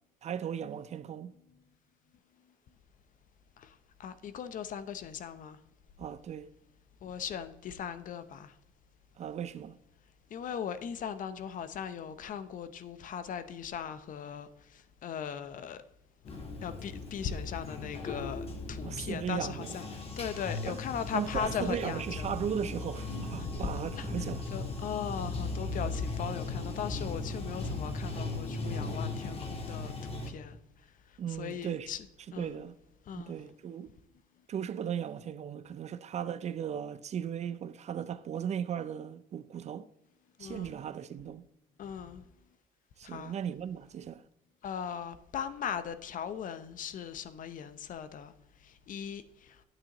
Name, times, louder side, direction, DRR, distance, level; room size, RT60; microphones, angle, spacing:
voice 1, 0.2-1.3 6.0-6.5 9.2-9.8 18.8-19.7 20.7-20.8 21.1-24.4 31.2-31.9 32.4-32.8 33.2-33.9 34.5-39.9 40.4-41.5 43.0-44.2, right 8 dB, 40° right, 0.4 m, -37 dB
voice 2, 4.0-5.6 7.0-8.5 10.3-14.5 15.0-15.8 16.6-19.8 20.2-22.3 23.4-23.7 24.0-24.1 24.5-30.6 31.4-32.1 32.3-32.5 33.1-33.3 40.4-40.7 41.8-42.2 43.0-43.4 44.6-48.3 48.9-49.2, left 8 dB, 50° left, 0.7 m, -38 dB
Bathtub (filling or washing), 16.2-30.3, left 3 dB, 35° left, 1.6 m, -37 dB
9.7 x 8.6 x 3.0 m
cardioid pair, 110°, 17 cm